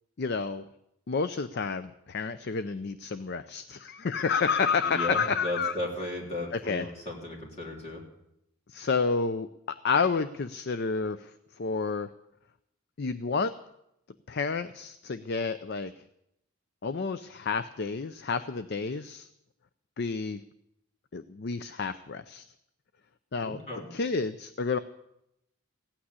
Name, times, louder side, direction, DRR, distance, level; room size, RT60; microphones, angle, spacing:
voice 1, 0.2-0.6 1.1-5.8 6.5-6.8 8.7-11.3 11.6-12.1 13.0-13.5 14.3-15.9 16.8-19.3 20.0-20.4 21.1-22.5 23.3-23.6 23.9-24.8, left 5 dB, 45° left, 13 dB, 0.5 m, -30 dB
voice 2, 4.8-8.0 23.4-23.9, left 1 dB, 30° left, -2 dB, 3.5 m, -35 dB
16.0 x 8.8 x 9.6 m, 0.82 s
head